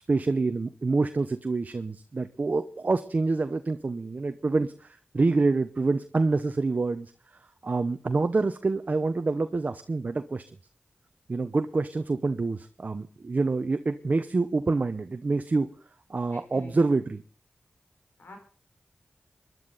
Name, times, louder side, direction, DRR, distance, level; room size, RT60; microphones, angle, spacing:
voice 1, 0.1-7.1 7.6-10.4 11.3-15.7 16.1-17.2, right 3 dB, 50° right, 9 dB, 0.9 m, -27 dB
voice 2, 16.3-17.0 18.2-18.4, left 1 dB, 80° left, 4 dB, 5.2 m, -46 dB
24.0 x 11.0 x 4.1 m, 0.40 s
cardioid pair, 55°, 3 cm